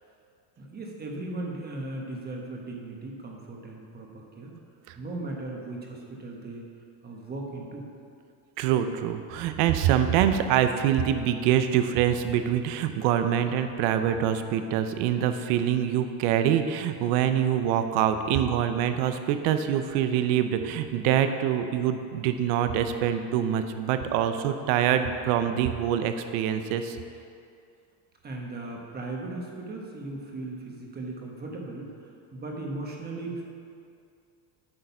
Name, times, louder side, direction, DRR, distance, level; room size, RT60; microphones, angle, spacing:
voice 1, 0.6-4.6 4.9-6.6 7.0-7.9 28.2-33.4, right 2 dB, 20° right, 0 dB, 1.2 m, -37 dB
voice 2, 8.6-27.0, right 9 dB, 80° right, 8 dB, 0.8 m, -25 dB
8.8 x 6.5 x 5.6 m, 2.4 s
cardioid pair, 150°, 46 cm